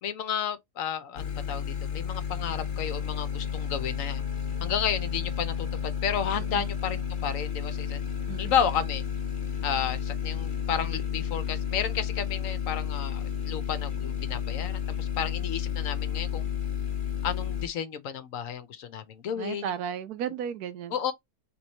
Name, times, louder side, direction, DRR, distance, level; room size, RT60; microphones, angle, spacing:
voice 1, 0.0-4.2 4.6-8.0 8.4-9.0 9.6-16.4 17.2-19.7 20.9-21.1, left 8 dB, 65° left, 1.0 m, -32 dB
sound 1, 1.2-17.7, left 8 dB, 50° left, 0.6 m, -32 dB
voice 2, 6.4-6.7 8.3-8.5 19.4-21.0, right 8 dB, 85° right, 1.2 m, -34 dB
3.4 x 3.0 x 4.0 m
omnidirectional pair, 1.6 m